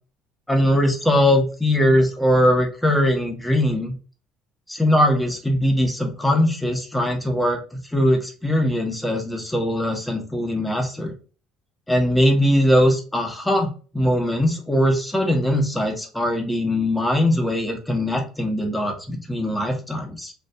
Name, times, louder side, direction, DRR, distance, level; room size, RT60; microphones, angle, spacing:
voice 1, 0.5-3.9 4.7-7.6 7.9-11.1 11.9-13.7 13.9-20.3, equal, 5° left, 3 dB, 1.0 m, -21 dB
3.3 x 2.6 x 2.7 m, 0.37 s
supercardioid pair, 100°, 0 cm